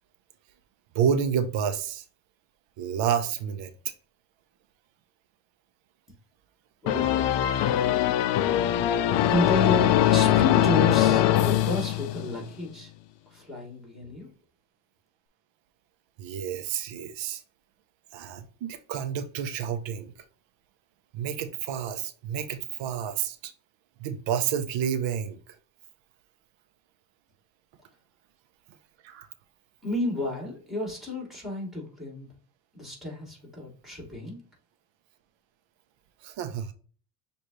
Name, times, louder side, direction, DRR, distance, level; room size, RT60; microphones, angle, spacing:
voice 1, 0.9-2.0 2.8-3.7 16.2-17.4 18.1-20.1 21.1-23.5 24.0-25.4 29.0-29.3 36.2-36.7, right 8 dB, 70° right, 0.8 m, -29 dB
voice 2, 6.8-12.9 13.3-14.3 29.8-32.3 32.7-34.4, left 2 dB, ahead, 2.5 m, -32 dB
sound 1, 6.9-12.5, left 11 dB, 65° left, 0.5 m, -22 dB
6.6 x 2.6 x 3.0 m
cardioid pair, 90°, 47 cm